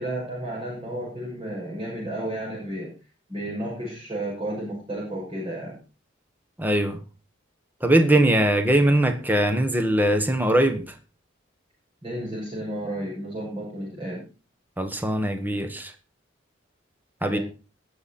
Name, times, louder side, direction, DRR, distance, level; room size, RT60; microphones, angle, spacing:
voice 1, 0.0-2.9 3.3-5.8 12.0-14.2 17.2-17.4, right 1 dB, 25° right, 6.3 m, -32 dB
voice 2, 6.6-7.0 7.8-10.9 14.8-15.9 17.2-17.4, right 1 dB, 10° right, 1.3 m, -21 dB
19.0 x 7.1 x 4.3 m
head